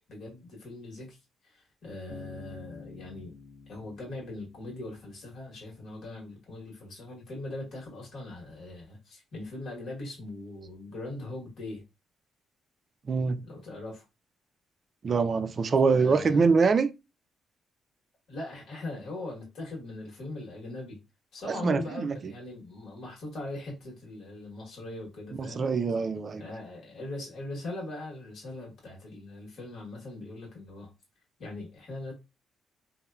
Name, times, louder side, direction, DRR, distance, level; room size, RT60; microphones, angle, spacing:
voice 1, 0.1-1.2 1.4-3.3 3.7-11.8 13.4-14.0 15.9-16.5 18.3-21.0 21.3-25.6 26.4-30.9 31.4-32.1, left 2 dB, 65° left, 1.1 m, -40 dB
Bass guitar, 2.1-5.7, left 5 dB, 40° left, 0.6 m, -49 dB
voice 2, 13.1-13.4 15.0-16.9 21.4-22.3 25.4-26.5, right 5 dB, 45° right, 0.3 m, -24 dB
3.0 x 2.1 x 2.2 m
cardioid pair, 90°, 0 cm